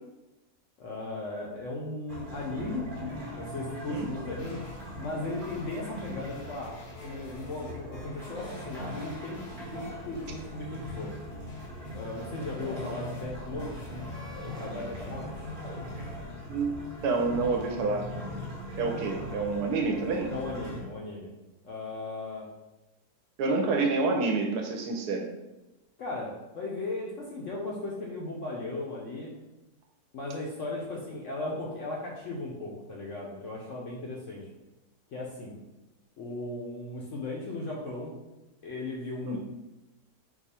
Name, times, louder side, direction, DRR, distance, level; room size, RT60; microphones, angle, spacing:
voice 1, 0.8-2.9 3.3-4.6 5.0-6.7 7.0-9.4 9.7-11.1 11.9-13.9 14.4-15.5 18.9-19.4 20.3-21.3 21.6-22.5 23.4-24.2 26.0-29.3 30.1-34.4 35.1-35.5 36.2-38.2 38.6-39.4, left 2 dB, 65° left, -3 dB, 0.8 m, -37 dB
sound 1, 2.1-20.8, left 1 dB, 50° right, 0.6 m, -40 dB
sound 2, 4.4-16.3, left 1 dB, 85° left, 1.6 m, -48 dB
voice 2, 17.0-18.1 18.8-20.3 23.4-25.3 39.2-39.4, right 3 dB, 70° right, 2 dB, 1.0 m, -28 dB
4.5 x 2.4 x 4.2 m, 1.0 s
omnidirectional pair, 1.8 m